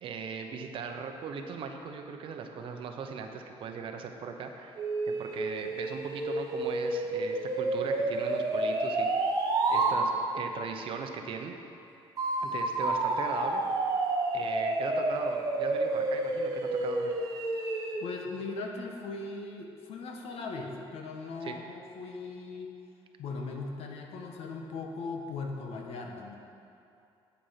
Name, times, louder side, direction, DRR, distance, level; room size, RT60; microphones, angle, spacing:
voice 1, 0.0-4.8 5.1-9.1 9.7-11.6 12.4-13.6 14.3-17.1 21.4-21.6, right 5 dB, 60° right, 5 dB, 0.8 m, -39 dB
sound 1, 4.8-10.0 12.2-18.0, right 2 dB, 35° right, 1.2 m, -30 dB
voice 2, 18.0-22.7 23.2-26.4, left 3 dB, 75° left, 2 dB, 1.3 m, -39 dB
8.6 x 8.3 x 5.8 m, 2.7 s
cardioid pair, 165°, 10 cm